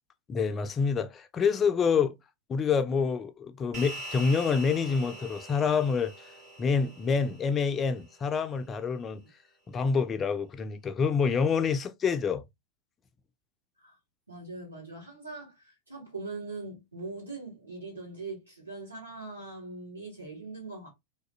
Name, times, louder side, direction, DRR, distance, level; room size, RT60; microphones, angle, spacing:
voice 1, 0.3-2.2 2.5-6.1 6.6-9.2 9.7-12.4, left 5 dB, 25° left, 0.3 m, -27 dB
sound 1, 3.7-8.4, right 1 dB, 40° right, 1.3 m, -43 dB
voice 2, 14.3-20.9, right 3 dB, 80° right, 1.7 m, -41 dB
2.6 x 2.5 x 2.3 m
figure-of-eight pair, 90°, 0 cm